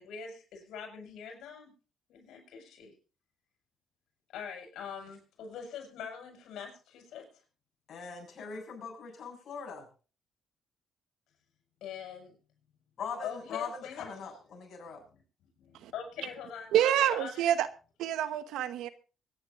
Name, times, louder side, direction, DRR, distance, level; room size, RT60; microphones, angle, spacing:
voice 1, 0.0-1.7 2.1-2.9 4.3-7.2 11.8-12.3 13.2-14.1 14.9-15.2 15.6-17.5, left 7 dB, 85° left, 6.0 m, -43 dB
voice 2, 7.9-9.9 13.0-15.0, left 5 dB, 60° left, 7.2 m, -41 dB
voice 3, 16.7-17.7 18.0-18.9, right 11 dB, 90° right, 1.2 m, -27 dB
24.0 x 10.5 x 2.6 m
cardioid pair, 90°, 0 cm